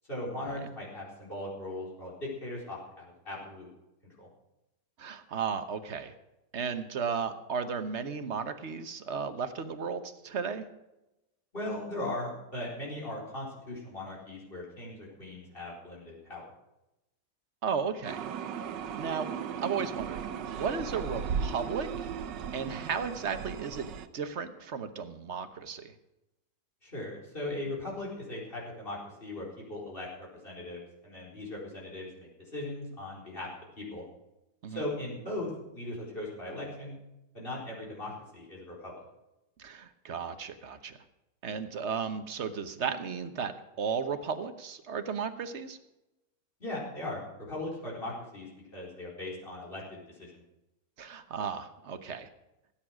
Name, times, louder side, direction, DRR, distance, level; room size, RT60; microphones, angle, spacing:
voice 1, 0.1-3.7 4.2-4.3 11.5-16.4 26.8-30.1 30.4-33.5 33.8-34.0 34.7-37.0 37.3-38.9 46.6-50.4, left 1 dB, 30° left, -3 dB, 4.6 m, -39 dB
voice 2, 5.0-6.1 6.5-10.7 17.6-18.2 19.0-19.3 19.6-22.2 22.5-25.9 34.6-34.9 39.6-41.0 41.4-45.8 51.0-52.3, right 6 dB, 45° right, 9 dB, 1.1 m, -35 dB
sound 1, 18.0-24.1, right 7 dB, 80° right, 1.5 m, -36 dB
18.0 x 8.9 x 6.2 m, 0.94 s
omnidirectional pair, 1.9 m